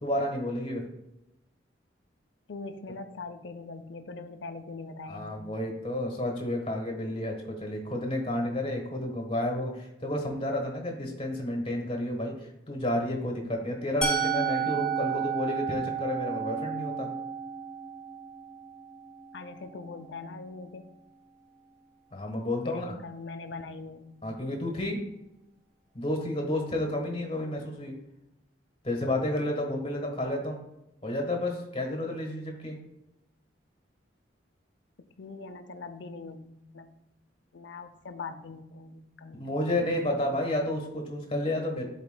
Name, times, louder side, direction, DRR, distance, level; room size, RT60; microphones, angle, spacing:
voice 1, 0.0-0.8 5.1-17.1 22.1-22.9 24.2-25.0 25.9-27.9 28.8-30.6 31.0-32.8 39.3-41.8, left 1 dB, 30° left, 1 dB, 1.2 m, -31 dB
voice 2, 2.5-5.5 19.3-20.9 22.6-24.1 35.0-36.9 37.5-39.7, left 3 dB, 75° left, 9 dB, 0.6 m, -42 dB
Musical instrument, 14.0-19.9, right 6 dB, 5° left, 1.1 m, -32 dB
11.0 x 4.1 x 2.2 m, 0.88 s
head